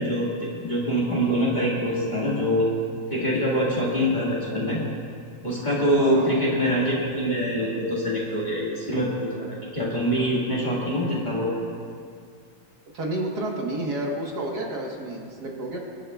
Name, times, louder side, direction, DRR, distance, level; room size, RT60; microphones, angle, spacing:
voice 1, 0.0-2.7 3.1-4.8 5.4-11.6, equal, 25° left, -6 dB, 1.8 m, -24 dB
voice 2, 6.0-6.4 12.9-15.8, right 1 dB, 60° right, -1 dB, 1.8 m, -30 dB
25.5 x 10.0 x 2.3 m, 2.3 s
omnidirectional pair, 2.1 m